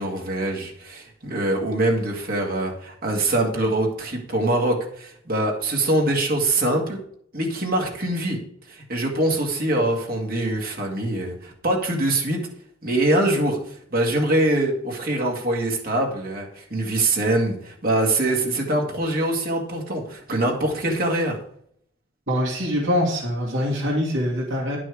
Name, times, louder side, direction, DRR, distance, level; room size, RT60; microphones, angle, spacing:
voice 1, 0.0-7.0 7.3-8.4 8.7-12.4 12.8-21.4, right 1 dB, 50° right, 0 dB, 2.1 m, -23 dB
voice 2, 22.3-24.8, equal, 65° right, -4 dB, 2.7 m, -24 dB
11.0 x 6.1 x 4.9 m, 0.66 s
head